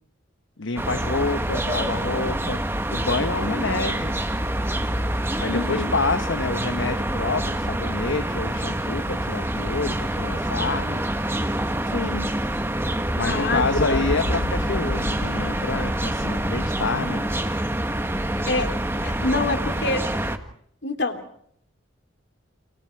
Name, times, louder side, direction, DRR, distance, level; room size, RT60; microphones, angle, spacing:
voice 1, 0.6-2.6 2.9-4.2 5.4-11.1 13.2-17.3, left 3 dB, 75° left, 1.0 m, -28 dB
sound 1, 0.8-20.4, right 1 dB, 10° right, 1.7 m, -26 dB
voice 2, 5.5-5.9 11.9-12.3 13.3-14.1 14.3-14.5 18.5-18.7 19.0-20.0 20.8-21.2, left 2 dB, 60° left, 3.3 m, -26 dB
sound 2, 13.6-17.6 18.1-18.3, left 1 dB, 45° left, 0.9 m, -32 dB
30.0 x 29.0 x 4.6 m
head